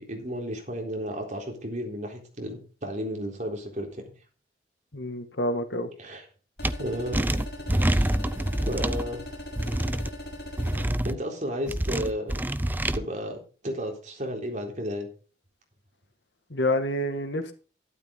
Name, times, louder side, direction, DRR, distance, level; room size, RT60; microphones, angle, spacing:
voice 1, 0.0-4.0 6.0-6.2 6.8-7.2 7.6-8.1 8.6-9.2 11.0-12.3 12.9-13.4 13.6-15.1, equal, 45° right, 2 dB, 3.8 m, -33 dB
voice 2, 4.9-5.9 16.5-17.5, left 1 dB, 90° left, 7 dB, 2.2 m, -28 dB
sound 1, 6.6-10.9, left 1 dB, 60° left, 5.9 m, -39 dB
sound 2, 6.6-6.7 7.1-9.0 9.6-10.1 10.6-11.1 11.7-13.0, right 1 dB, 10° right, 0.5 m, -26 dB
12.5 x 12.0 x 3.9 m, 0.36 s
head